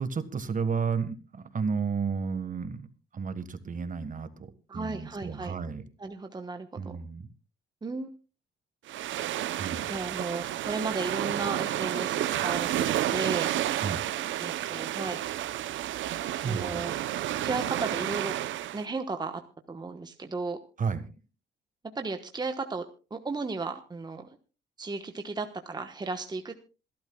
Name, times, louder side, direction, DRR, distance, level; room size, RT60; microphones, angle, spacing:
voice 1, 0.0-2.9 3.1-5.8 6.8-7.3 9.5-9.9 13.8-14.0 16.4-16.9 20.8-21.0, right 5 dB, 40° right, 11 dB, 1.6 m, -32 dB
voice 2, 4.7-5.6 6.0-7.0 7.8-8.1 9.9-13.5 14.4-15.2 16.5-17.0 17.4-18.3 18.7-19.4 19.7-20.6 21.9-22.8 23.1-24.3 24.8-26.6, right 3 dB, 20° right, 6 dB, 1.2 m, -34 dB
sound 1, 8.9-18.8, right 12 dB, 75° right, 0.7 m, -31 dB
26.5 x 12.0 x 2.3 m, 0.33 s
cardioid pair, 90°, 20 cm